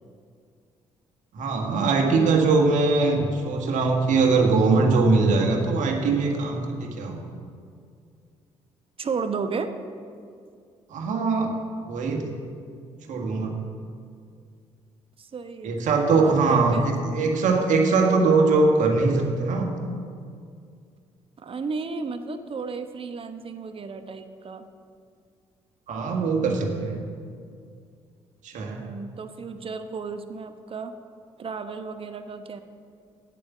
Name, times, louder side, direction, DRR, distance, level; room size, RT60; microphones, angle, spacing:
voice 1, 1.3-7.3 10.9-11.6 11.9-12.3 13.1-13.6 15.6-19.8 25.9-27.0 28.4-28.8, right 3 dB, 60° right, 2 dB, 1.7 m, -22 dB
voice 2, 9.0-9.7 15.2-16.9 21.4-24.6 28.7-31.0 31.4-32.6, right 5 dB, 40° right, 8 dB, 1.0 m, -33 dB
8.6 x 8.5 x 7.2 m, 2.3 s
hypercardioid pair, 50°, 14 cm